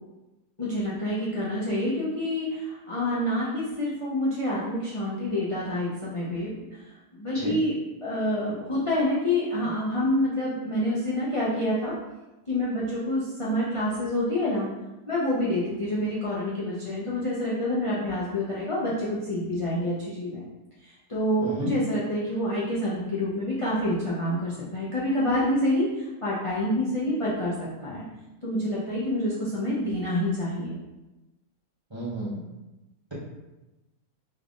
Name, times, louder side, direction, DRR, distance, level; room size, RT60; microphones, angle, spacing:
voice 1, 0.6-6.8 7.1-12.0 12.5-14.7 15.1-20.4 20.8-28.0 28.4-30.8, left 1 dB, 55° left, -8 dB, 0.3 m, -27 dB
voice 2, 21.4-21.7 31.9-32.4, right 1 dB, 30° right, -8 dB, 0.6 m, -32 dB
3.2 x 2.5 x 3.5 m, 1.0 s
omnidirectional pair, 1.6 m